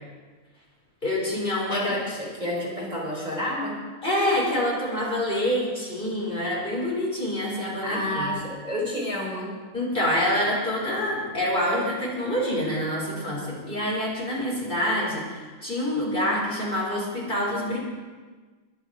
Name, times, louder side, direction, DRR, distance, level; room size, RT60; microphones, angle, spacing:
voice 1, 1.0-1.8 4.0-8.3 9.7-17.8, left 1 dB, 40° left, -4 dB, 5.1 m, -26 dB
voice 2, 1.7-3.8 7.8-9.6, left 1 dB, 30° right, -3 dB, 3.9 m, -29 dB
22.0 x 11.5 x 4.9 m, 1.4 s
omnidirectional pair, 1.5 m